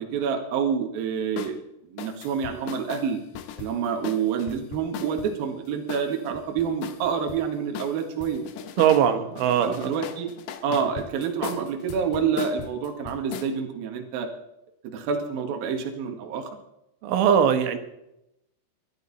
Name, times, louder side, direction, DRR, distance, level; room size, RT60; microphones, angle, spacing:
voice 1, 0.0-1.6 1.9-3.2 3.6-8.4 9.6-10.3 10.6-14.3 14.8-16.5, right 7 dB, 60° right, 3 dB, 3.2 m, -28 dB
sound 1, 1.4-1.6 2.0-5.3 5.9-7.4 7.7-9.1 9.4-13.5, left 8 dB, 75° left, 2.9 m, -38 dB
voice 2, 8.8-9.9 17.0-17.8, right 8 dB, 85° right, 8 dB, 3.8 m, -21 dB
24.0 x 10.5 x 4.2 m, 0.85 s
omnidirectional pair, 5.4 m